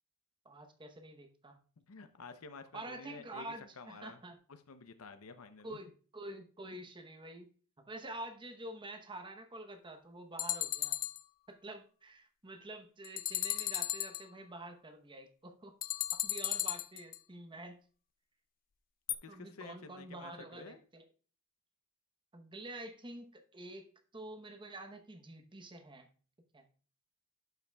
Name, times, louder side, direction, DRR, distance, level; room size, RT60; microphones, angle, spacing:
voice 1, 0.4-1.6 2.7-4.4 5.6-7.5 7.9-11.0 11.5-15.7 16.1-17.8 19.3-21.0 22.3-26.1 26.5-26.6, right 1 dB, 25° right, 5 dB, 0.9 m, -48 dB
voice 2, 1.9-3.5 3.8-4.2 4.5-5.8 19.2-20.8, left 4 dB, 80° left, 9 dB, 0.7 m, -51 dB
sound 1, 10.4-11.2 13.0-14.2 15.8-17.2 19.1-19.2, left 13 dB, 45° left, 0.4 m, -35 dB
11.5 x 5.7 x 2.3 m, 0.41 s
head